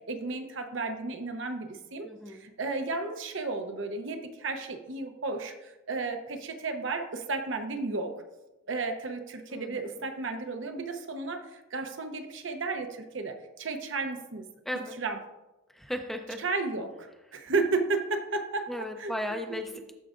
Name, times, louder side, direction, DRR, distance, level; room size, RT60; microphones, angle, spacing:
voice 1, 0.1-8.1 8.7-14.5 15.0-15.2 16.4-18.7 19.0-19.1, right 3 dB, 70° right, 6 dB, 0.8 m, -33 dB
voice 2, 2.0-2.5 9.5-9.8 14.7-15.0 15.7-16.4 18.7-19.9, left 1 dB, ahead, 4 dB, 0.5 m, -36 dB
12.5 x 4.6 x 2.5 m, 1.0 s
head